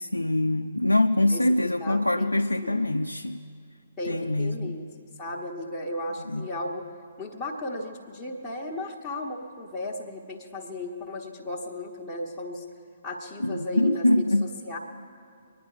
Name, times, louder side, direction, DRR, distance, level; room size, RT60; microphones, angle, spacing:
voice 1, 0.0-3.4 4.1-4.8 6.3-6.5 13.4-14.5, left 1 dB, 90° left, 0.4 m, -24 dB
voice 2, 1.8-2.3 2.6-2.8 4.0-4.8 5.2-6.8 7.2-12.6 13.0-14.2 14.6-14.8, left 2 dB, 10° left, 1.3 m, -35 dB
24.5 x 10.0 x 5.0 m
figure-of-eight pair, 130°, 0 cm